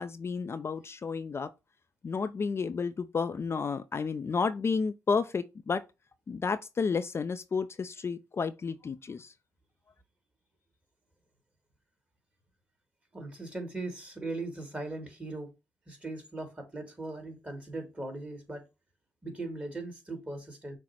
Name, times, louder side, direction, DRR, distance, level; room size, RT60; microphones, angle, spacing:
voice 1, 0.0-1.5 2.0-5.8 6.3-9.3, left 5 dB, 40° left, 0.4 m, -31 dB
voice 2, 13.1-15.5 15.9-18.6 19.2-20.8, right 2 dB, 20° right, 1.7 m, -39 dB
6.1 x 2.1 x 4.2 m
supercardioid pair, 60°, 7 cm